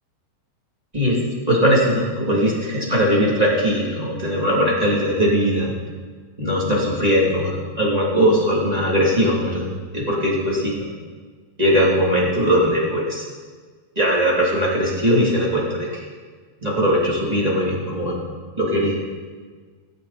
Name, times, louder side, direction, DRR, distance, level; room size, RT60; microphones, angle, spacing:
voice 1, 1.5-5.7 6.4-9.7 9.9-10.7 11.6-13.3 14.0-16.0 16.6-18.2 18.6-18.9, equal, 10° right, -5 dB, 2.0 m, -20 dB
20.0 x 8.2 x 4.2 m, 1.5 s
omnidirectional pair, 4.7 m